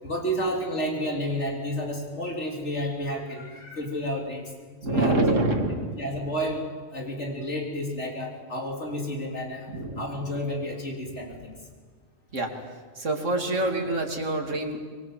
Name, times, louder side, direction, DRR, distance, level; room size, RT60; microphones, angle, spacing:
voice 1, 0.0-4.5 4.9-5.4 6.0-6.6 6.9-9.7 10.0-11.6, equal, 60° left, 0 dB, 4.2 m, -31 dB
voice 2, 4.8-6.0 9.7-10.0 12.3-12.6 12.9-14.9, right 2 dB, 65° right, 2 dB, 3.1 m, -26 dB
25.0 x 23.0 x 7.7 m, 1.6 s
omnidirectional pair, 1.4 m